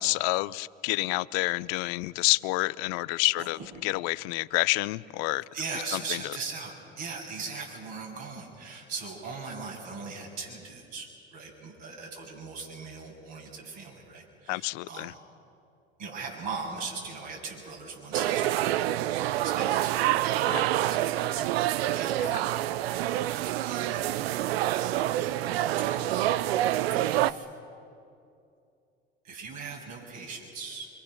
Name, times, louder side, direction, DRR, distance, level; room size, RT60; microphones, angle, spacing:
voice 1, 0.0-5.4 5.9-6.2 14.5-15.1 20.5-20.6 22.2-22.3, left 22 dB, 75° left, 18 dB, 0.6 m, -28 dB
voice 2, 5.5-15.2 16.0-22.5 23.6-25.1 25.8-26.3 26.9-27.5 29.2-30.9, right 4 dB, 65° right, -1 dB, 7.4 m, -40 dB
sound 1, 18.1-27.3, right 14 dB, 90° right, 0.5 m, -27 dB
25.0 x 24.5 x 6.3 m, 2.5 s
hypercardioid pair, 70°, 30 cm